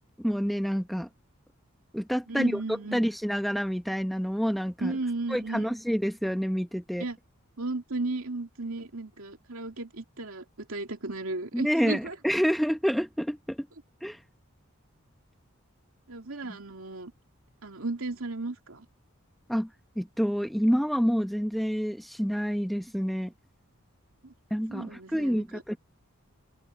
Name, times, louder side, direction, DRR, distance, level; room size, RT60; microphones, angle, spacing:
voice 1, 0.2-1.1 1.9-2.6 2.9-5.0 5.3-7.0 11.5-13.6 14.0-14.2 19.5-19.7 20.0-23.3 24.5-25.8, equal, ahead, 0.9 m, -28 dB
voice 2, 2.3-3.0 4.8-5.7 7.0-7.2 7.6-12.1 16.1-17.1 17.6-18.9 24.2-24.3 24.7-25.6, right 2 dB, 75° right, 2.7 m, -35 dB
open air
head